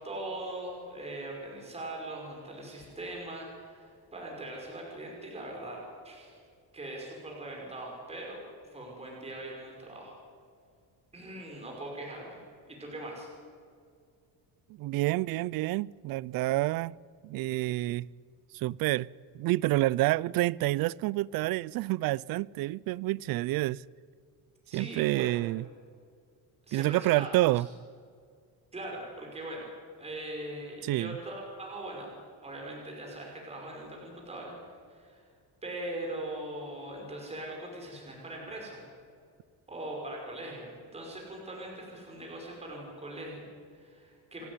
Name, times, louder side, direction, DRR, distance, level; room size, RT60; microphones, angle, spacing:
voice 1, 0.0-6.4 6.7-8.4 8.7-10.1 11.1-13.3 24.7-25.4 26.7-27.3 27.6-27.7 28.7-29.7 30.0-32.1 32.4-35.3 35.6-38.8 39.7-44.5, right 1 dB, 15° right, 5.7 m, -41 dB
voice 2, 14.8-17.0 17.2-18.1 18.5-19.1 19.3-23.8 24.7-25.6 26.7-27.7 30.8-31.2, right 18 dB, 60° right, 0.5 m, -28 dB
29.5 x 13.5 x 9.8 m
cardioid pair, 160°, 40 cm